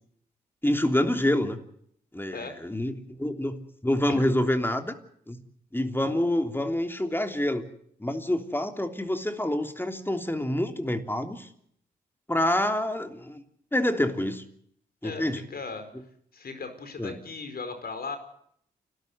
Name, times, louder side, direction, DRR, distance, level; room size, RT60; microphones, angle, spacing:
voice 1, 0.6-1.6 2.1-4.9 5.3-5.4 5.7-7.6 8.0-11.5 12.3-13.4 13.7-14.4 15.0-15.4 17.0-17.2, left 1 dB, 10° left, 6 dB, 3.2 m, -27 dB
voice 2, 15.0-15.9 16.3-18.2, left 4 dB, 60° left, 8 dB, 4.7 m, -37 dB
29.0 x 13.0 x 8.0 m, 0.68 s
supercardioid pair, 50°, 18 cm